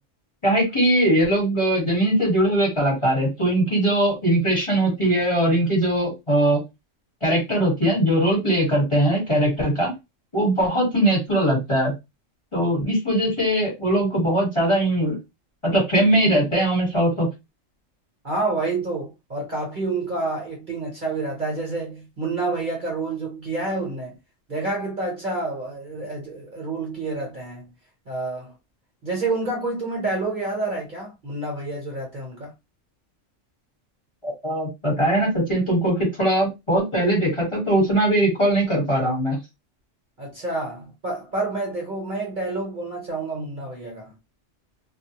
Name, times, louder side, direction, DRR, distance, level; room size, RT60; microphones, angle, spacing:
voice 1, 0.4-6.6 7.2-9.9 10.3-11.9 12.5-15.2 15.6-17.3 34.2-39.4, right 1 dB, 25° left, 1.2 m, -20 dB
voice 2, 18.2-24.2 24.5-27.7 28.1-28.5 29.0-32.5 40.2-44.1, right 2 dB, 40° right, 1.0 m, -28 dB
2.4 x 2.2 x 2.8 m
omnidirectional pair, 1.4 m